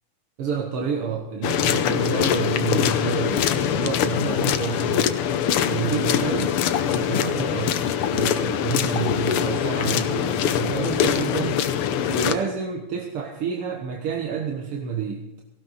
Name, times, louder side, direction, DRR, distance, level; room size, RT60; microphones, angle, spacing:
voice 1, 0.4-5.1 5.6-6.6 7.0-11.6 12.1-15.3, right 6 dB, 55° right, 1 dB, 1.9 m, -29 dB
sound 1, 1.4-12.4, left 9 dB, 75° left, 1.2 m, -23 dB
18.0 x 16.5 x 4.2 m, 0.98 s
omnidirectional pair, 3.6 m